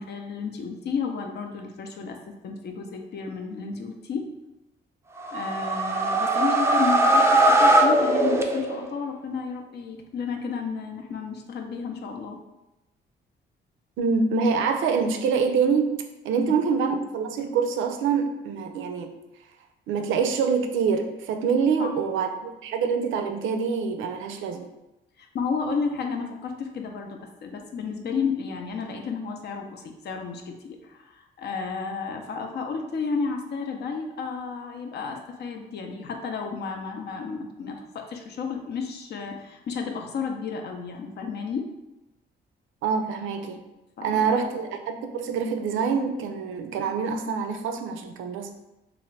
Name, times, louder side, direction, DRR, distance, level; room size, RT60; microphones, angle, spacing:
voice 1, 0.0-2.2 2.4-4.3 5.3-12.4 16.4-16.6 21.8-21.9 25.2-41.7 44.0-44.4, left 5 dB, 55° left, 4 dB, 0.5 m, -32 dB
sound 1, 5.2-9.0, right 1 dB, 15° right, 0.3 m, -20 dB
voice 2, 14.0-19.2 19.9-24.7 42.8-43.6 44.0-48.5, right 5 dB, 80° right, 6 dB, 0.4 m, -25 dB
2.7 x 2.5 x 3.2 m, 0.95 s
cardioid pair, 90°, 20 cm